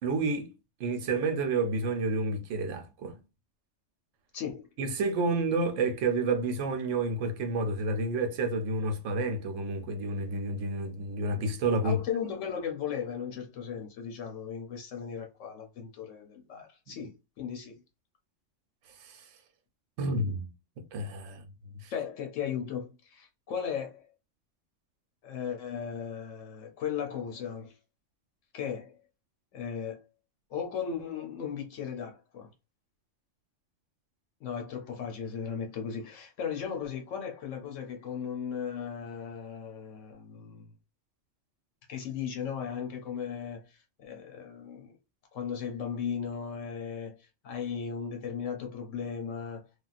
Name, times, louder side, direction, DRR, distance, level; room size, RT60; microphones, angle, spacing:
voice 1, 0.0-0.5 0.8-3.2 4.8-12.0 19.0-19.2 20.0-20.5 20.9-21.4 21.8-21.9, right 2 dB, 85° right, 1.0 m, -30 dB
voice 2, 4.3-4.7 11.8-17.8 21.9-24.1 25.2-27.7 28.5-28.9 29.5-30.0 30.5-32.5 34.4-40.7 41.9-43.7 44.0-44.9 45.3-49.7, left 7 dB, 85° left, 1.1 m, -36 dB
3.4 x 2.3 x 2.4 m
omnidirectional pair, 1.3 m